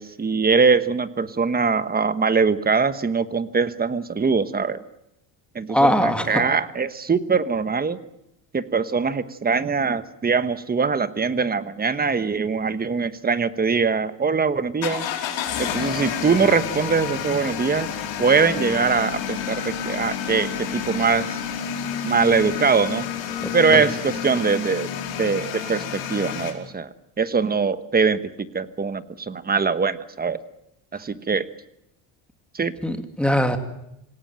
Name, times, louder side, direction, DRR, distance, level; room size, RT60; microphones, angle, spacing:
voice 1, 0.0-4.8 5.5-8.0 8.5-15.0 15.6-17.9 18.2-21.4 22.0-23.1 23.5-24.9 25.2-26.9 27.2-28.2 28.5-30.4 30.9-31.5 32.5-32.7, right 5 dB, 20° right, 12 dB, 1.2 m, -22 dB
voice 2, 5.7-6.3 23.4-23.9 32.8-33.6, equal, ahead, 6 dB, 2.3 m, -21 dB
sound 1, 14.8-26.5, left 8 dB, 60° left, 4.9 m, -29 dB
26.5 x 17.5 x 9.0 m, 0.83 s
cardioid pair, 130°, 49 cm